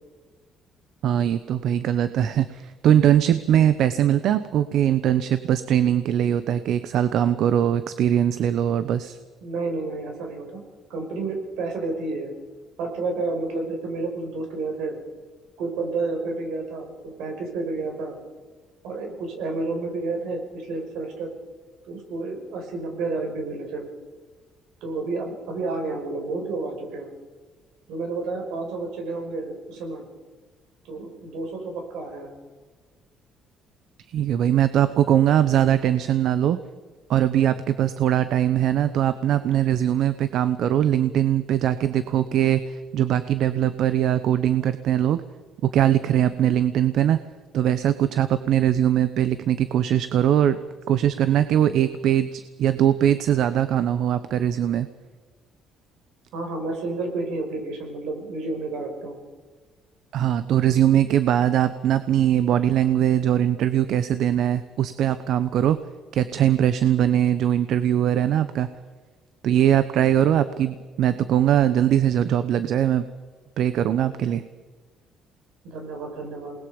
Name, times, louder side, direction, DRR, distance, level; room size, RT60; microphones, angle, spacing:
voice 1, 1.0-9.2 34.1-36.6 37.1-45.2 45.6-47.2 47.5-50.6 50.9-54.9 60.1-65.8 66.1-68.7 69.4-73.1 73.6-74.4, right 10 dB, 65° right, 12 dB, 0.9 m, -21 dB
voice 2, 9.4-10.6 10.9-12.3 12.8-15.0 15.6-18.1 18.8-21.3 21.9-23.8 24.8-27.1 27.9-30.0 30.8-32.3 56.3-59.2 75.6-76.5, right 3 dB, 85° right, 3 dB, 5.8 m, -30 dB
28.5 x 20.0 x 5.3 m, 1.4 s
cardioid pair, 125°, 0 cm